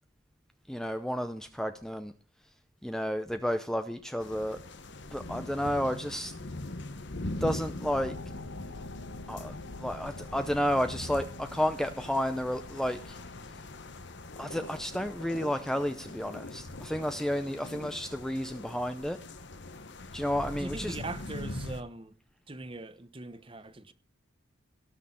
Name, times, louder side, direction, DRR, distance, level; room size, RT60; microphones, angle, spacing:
voice 1, 0.7-2.1 2.8-4.6 5.1-6.3 7.4-8.1 9.3-13.2 14.4-19.2 20.1-21.0, equal, ahead, 0.6 m, -31 dB
sound 1, 4.2-21.8, left 2 dB, 55° left, 1.1 m, -42 dB
sound 2, 7.8-17.0, left 2 dB, 70° left, 1.2 m, -47 dB
voice 2, 20.6-22.1 22.5-23.9, right 2 dB, 25° right, 1.0 m, -41 dB
18.0 x 6.5 x 7.5 m
head